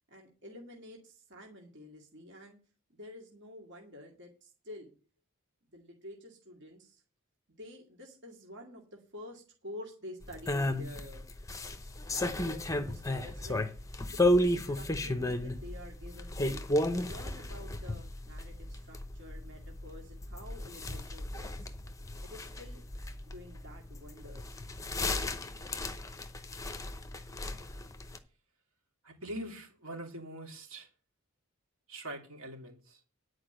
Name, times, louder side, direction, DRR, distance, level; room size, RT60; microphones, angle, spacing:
voice 1, 0.1-2.6 2.9-4.9 5.7-7.0 7.6-11.3 12.1-13.8 14.1-16.7 17.0-21.7 22.2-22.8 23.3-24.6, left 1 dB, 55° right, 2.2 m, -49 dB
sound 1, 10.2-28.2, left 1 dB, 15° left, 0.8 m, -34 dB
voice 2, 29.0-30.9 31.9-33.0, right 1 dB, 70° right, 3.0 m, -43 dB
10.5 x 4.9 x 7.9 m
head